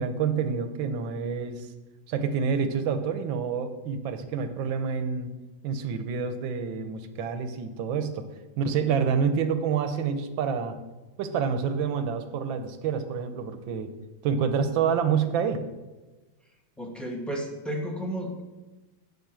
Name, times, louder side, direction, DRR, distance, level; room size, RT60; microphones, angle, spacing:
voice 1, 0.0-1.7 2.1-5.3 5.6-8.3 8.6-10.8 11.2-13.9 14.2-15.6, right 6 dB, 75° right, 8 dB, 1.5 m, -28 dB
voice 2, 16.8-18.4, equal, ahead, 0 dB, 1.1 m, -32 dB
8.1 x 6.0 x 7.5 m, 1.2 s
omnidirectional pair, 2.2 m